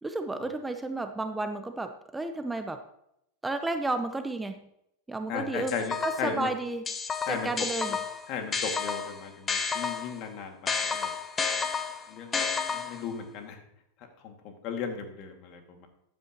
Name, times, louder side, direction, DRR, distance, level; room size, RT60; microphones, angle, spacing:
voice 1, 0.0-2.8 3.4-4.7 5.1-5.7 6.0-6.9 7.3-8.0, right 2 dB, 10° right, 8 dB, 0.8 m, -32 dB
voice 2, 5.3-6.5 7.3-7.5 8.3-11.1 12.1-12.5 12.7-13.6 14.2-15.9, left 6 dB, 50° left, 4 dB, 2.3 m, -36 dB
sound 1, 5.7-6.4 6.9-10.2 10.7-13.1, left 5 dB, 25° left, 1.0 m, -31 dB
14.0 x 9.7 x 3.0 m, 0.80 s
hypercardioid pair, 90°, 0 cm